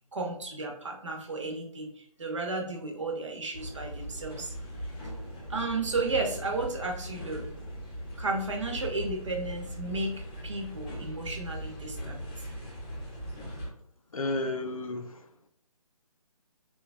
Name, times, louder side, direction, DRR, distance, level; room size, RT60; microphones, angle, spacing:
voice 1, 0.1-4.5 5.5-7.5 8.2-12.2, right 3 dB, 50° right, 0.7 m, -33 dB
sound 1, 3.5-13.7, equal, 15° left, 0.7 m, -39 dB
voice 2, 14.1-15.3, left 2 dB, 65° left, 0.5 m, -32 dB
3.0 x 2.3 x 2.5 m
figure-of-eight pair, 145°, 19 cm